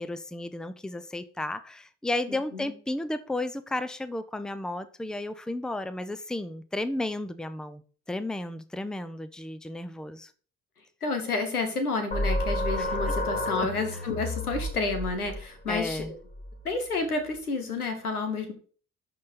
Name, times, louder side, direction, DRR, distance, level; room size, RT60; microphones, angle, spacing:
voice 1, 0.0-7.8 8.1-10.3 12.8-12.9 13.6-13.7 15.7-16.1, left 2 dB, ahead, 0.7 m, -33 dB
voice 2, 2.3-2.7 11.0-16.2 16.6-18.5, left 3 dB, 85° left, 1.3 m, -30 dB
sound 1, 12.1-17.4, left 1 dB, 20° left, 1.7 m, -32 dB
11.5 x 4.3 x 5.4 m
figure-of-eight pair, 45°, 43 cm